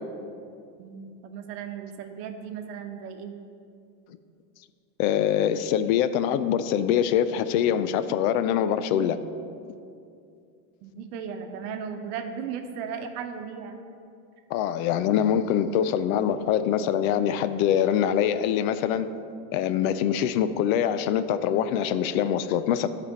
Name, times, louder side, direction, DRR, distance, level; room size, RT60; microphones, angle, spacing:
voice 1, 0.8-3.4 10.8-13.8, right 7 dB, 65° right, 6 dB, 0.9 m, -36 dB
voice 2, 5.0-9.2 14.5-19.1 19.5-22.9, left 9 dB, 60° left, 12 dB, 0.5 m, -24 dB
11.5 x 4.3 x 4.5 m, 2.5 s
supercardioid pair, 155°, 49 cm